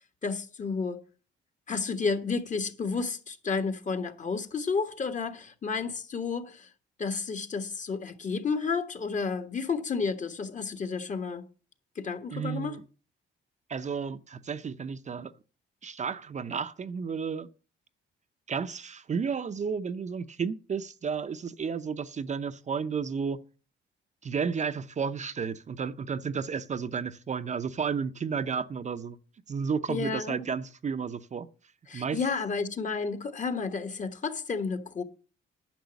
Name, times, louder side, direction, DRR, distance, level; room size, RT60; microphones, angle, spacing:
voice 1, 0.2-1.0 1.7-6.7 7.0-11.5 12.0-12.8 29.9-30.4 31.9-35.0, left 5 dB, 40° left, 1.4 m, -31 dB
voice 2, 12.3-12.8 13.7-15.3 15.8-17.5 18.5-23.4 24.2-29.2 29.5-31.5 31.9-32.2, right 6 dB, 35° right, 0.6 m, -32 dB
10.5 x 6.0 x 7.0 m
cardioid pair, 90°, 20 cm